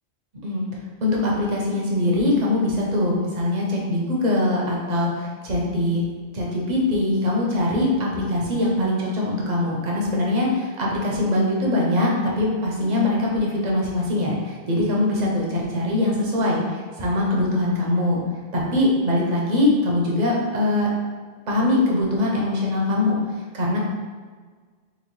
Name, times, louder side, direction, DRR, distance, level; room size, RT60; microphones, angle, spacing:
voice 1, 1.0-6.0 6.3-18.2 18.5-20.9 21.5-23.2 23.5-23.8, left 1 dB, 45° right, -3 dB, 0.7 m, -22 dB
3.9 x 2.4 x 3.0 m, 1.5 s
omnidirectional pair, 1.2 m